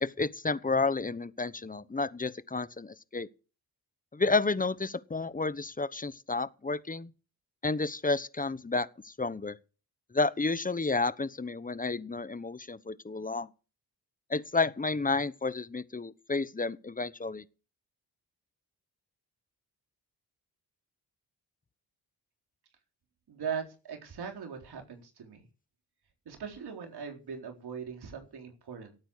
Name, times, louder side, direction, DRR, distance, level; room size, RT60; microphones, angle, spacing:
voice 1, 0.0-3.3 4.1-7.1 7.6-9.6 10.1-13.5 14.3-17.4, left 3 dB, 20° left, 0.9 m, -31 dB
voice 2, 23.3-25.5 26.3-29.0, right 6 dB, 75° right, 4.0 m, -40 dB
17.5 x 8.9 x 6.4 m
cardioid pair, 85°, 39 cm